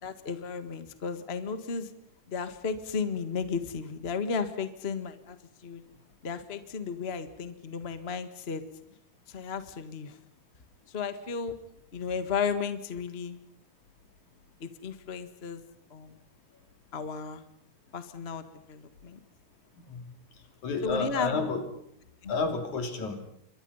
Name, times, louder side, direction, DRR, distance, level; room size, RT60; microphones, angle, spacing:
voice 1, 0.0-1.9 2.3-5.4 5.6-5.8 6.2-8.6 9.3-10.2 10.9-11.5 11.9-13.4 14.6-15.6 15.9-16.2 16.9-17.4 17.9-19.2 20.8-21.3 22.2-22.3, left 5 dB, 30° left, 10 dB, 1.1 m, -34 dB
voice 2, 20.6-21.6 22.3-23.2, left 4 dB, 65° left, 6 dB, 4.2 m, -30 dB
28.5 x 24.0 x 5.6 m, 0.72 s
omnidirectional pair, 3.6 m